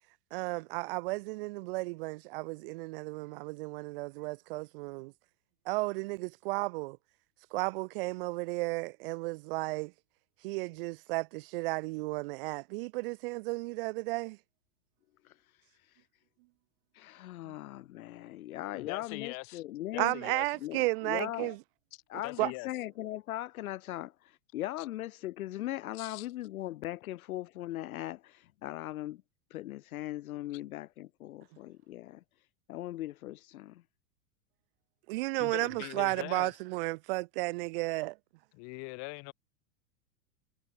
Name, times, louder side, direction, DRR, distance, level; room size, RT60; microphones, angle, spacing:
voice 1, 0.3-5.1 5.7-7.0 7.5-9.9 10.4-14.4 17.5-17.6 20.0-21.6 22.4-22.5 35.1-38.2, right 24 dB, 40° right, 0.5 m, -33 dB
voice 2, 17.0-20.1 20.6-21.6 22.1-24.1 24.5-29.2 29.5-32.2 32.7-33.8, left 15 dB, 80° left, 0.5 m, -39 dB
voice 3, 18.7-19.6 19.9-20.6 22.2-22.7 24.8-24.9 25.9-26.3 35.4-36.5 38.5-39.3, left 34 dB, 40° left, 1.0 m, -42 dB
hypercardioid pair, 110°, 42 cm